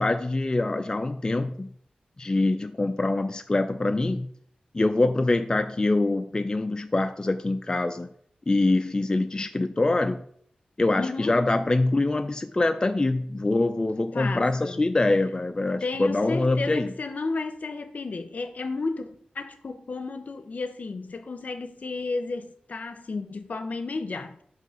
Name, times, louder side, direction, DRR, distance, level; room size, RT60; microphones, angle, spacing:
voice 1, 0.0-1.7 2.2-4.3 4.7-8.1 8.5-10.2 10.8-16.9, left 2 dB, 25° left, 0.4 m, -24 dB
voice 2, 11.0-11.4 14.1-14.9 15.8-24.4, left 3 dB, 65° left, 0.7 m, -33 dB
7.4 x 3.1 x 5.7 m
wide cardioid pair, 95°, 3 cm